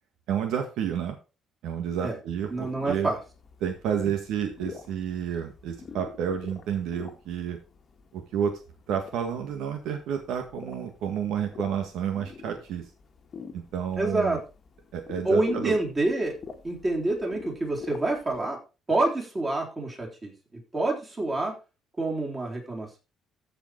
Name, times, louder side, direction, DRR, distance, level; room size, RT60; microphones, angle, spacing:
voice 1, 0.3-1.2 1.6-3.1 3.6-7.6 8.1-8.6 8.9-12.9 13.5-14.4 14.9-15.7, right 8 dB, 80° right, 5 dB, 1.7 m, -30 dB
sound 1, 2.3-18.4, left 5 dB, 35° left, 1.5 m, -46 dB
voice 2, 2.5-3.2 14.0-14.4 15.2-16.4 16.6-18.6 18.9-21.6 22.0-23.0, right 2 dB, 20° right, -1 dB, 3.7 m, -27 dB
14.5 x 5.1 x 4.6 m, 0.31 s
cardioid pair, 155°, 0 cm